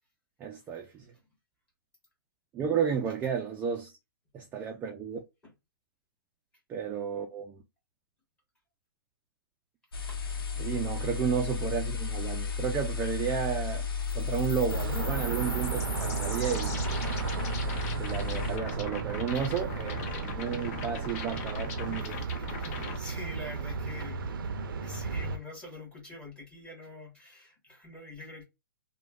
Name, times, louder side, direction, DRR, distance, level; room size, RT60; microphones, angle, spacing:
voice 1, 0.4-1.1 2.5-3.9 4.3-5.2 6.7-7.6 10.6-13.8 14.1-16.8 18.0-22.2, right 7 dB, 15° right, 0.3 m, -32 dB
sound 1, 9.9-18.6, left 4 dB, 85° left, 0.8 m, -34 dB
sound 2, 14.1-23.0, left 5 dB, 45° left, 0.7 m, -39 dB
sound 3, 14.7-25.4, right 6 dB, 75° right, 0.5 m, -35 dB
voice 2, 19.3-20.0 20.5-20.7 22.0-24.4 24.8-28.4, left 2 dB, 10° left, 1.3 m, -46 dB
3.0 x 2.2 x 2.2 m
hypercardioid pair, 145°, 12 cm